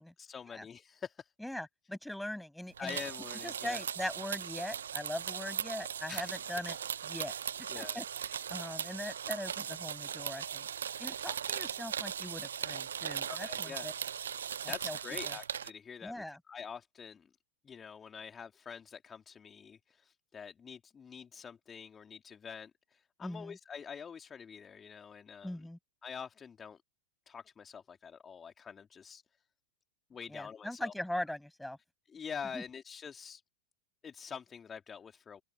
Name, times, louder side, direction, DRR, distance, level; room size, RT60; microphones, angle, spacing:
voice 1, 0.2-1.3 2.8-3.8 6.1-6.4 7.7-8.0 13.3-13.9 14.3-17.3 17.6-25.7 26.0-26.8 27.3-29.2 30.1-30.9 32.1-33.4 34.0-35.4, left 7 dB, 20° left, 2.7 m, -46 dB
voice 2, 1.4-3.0 3.4-6.8 7.0-7.3 7.7-8.0 8.5-10.7 11.0-13.9 14.8-15.0 15.3-15.4 16.0-16.4 23.2-23.6 25.4-25.8 30.3-31.8 32.5-32.6, left 1 dB, 5° left, 7.4 m, -40 dB
sound 1, 2.8-15.7, right 8 dB, 65° right, 1.1 m, -38 dB
open air
figure-of-eight pair, 90°, 0 cm